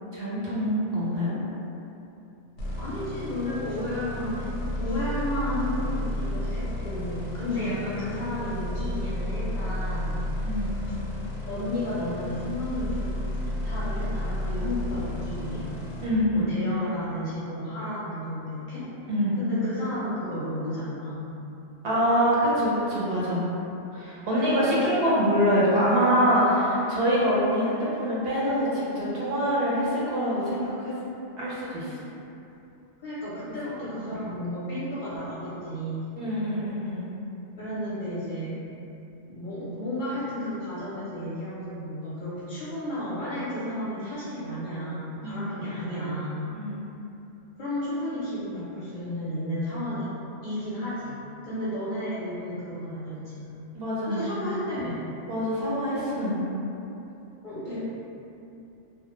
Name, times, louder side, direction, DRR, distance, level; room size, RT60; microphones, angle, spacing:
voice 1, 0.1-1.3 7.5-7.8 10.4-10.7 16.0-16.5 19.1-19.4 21.8-23.5 23.9-30.9 31.4-31.9 34.0-34.1 36.2-37.1 45.2-45.5 46.5-46.9 51.5-51.6 53.7-54.4 55.3-56.4, equal, 65° right, -8 dB, 0.7 m, -25 dB
sound 1, 2.6-16.1, left 1 dB, 90° left, 0.9 m, -32 dB
voice 2, 2.7-4.5 4.8-10.5 10.9-11.0 11.5-15.7 16.3-18.9 19.4-21.4 24.3-25.0 33.0-36.1 37.6-38.6 39.2-46.5 47.6-50.1 50.4-51.2 51.4-53.5 54.1-55.0 57.4-57.9, left 1 dB, 55° left, -10 dB, 0.6 m, -33 dB
2.2 x 2.1 x 2.9 m, 2.8 s
omnidirectional pair, 1.2 m